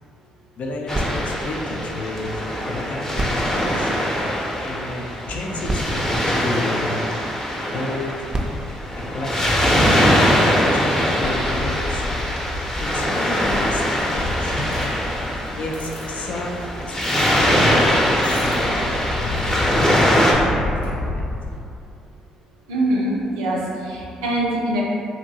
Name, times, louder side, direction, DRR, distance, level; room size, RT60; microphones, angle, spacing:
voice 1, 0.6-2.3 2.6-3.9 4.6-7.1 7.5-8.3 9.1-9.7 10.7-12.1 12.8-14.5 15.6-16.6 16.9-18.8 19.2-21.2, left 2 dB, 60° left, 0 dB, 0.4 m, -31 dB
Waves surf, 0.9-20.3, equal, 20° left, 0.6 m, -22 dB
sound 1, 0.9-2.6 3.1-4.7 5.4-5.5 5.6-7.2 8.0-9.9 10.6-10.7, right 1 dB, 25° right, 0.4 m, -31 dB
sound 2, 11.0-21.6, left 2 dB, 85° left, 0.8 m, -31 dB
voice 2, 22.7-24.8, right 1 dB, 85° right, -4 dB, 0.4 m, -23 dB
2.8 x 2.6 x 2.7 m, 2.6 s
hypercardioid pair, 50°, 3 cm